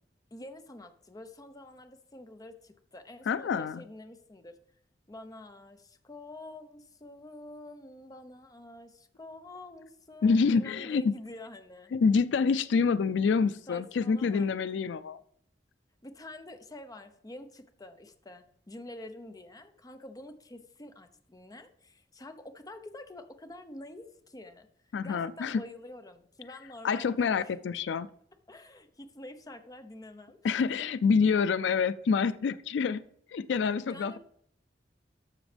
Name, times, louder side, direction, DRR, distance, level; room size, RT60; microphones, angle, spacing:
voice 1, 0.3-4.5 5.1-11.9 13.7-14.5 16.0-24.7 25.0-27.4 28.5-30.9 33.8-34.2, left 1 dB, 20° left, 8 dB, 0.8 m, -47 dB
voice 2, 3.3-3.8 10.2-11.1 11.9-15.2 24.9-25.6 26.8-28.1 30.4-34.2, left 5 dB, 90° left, 16 dB, 0.4 m, -27 dB
12.5 x 7.0 x 3.4 m, 0.67 s
head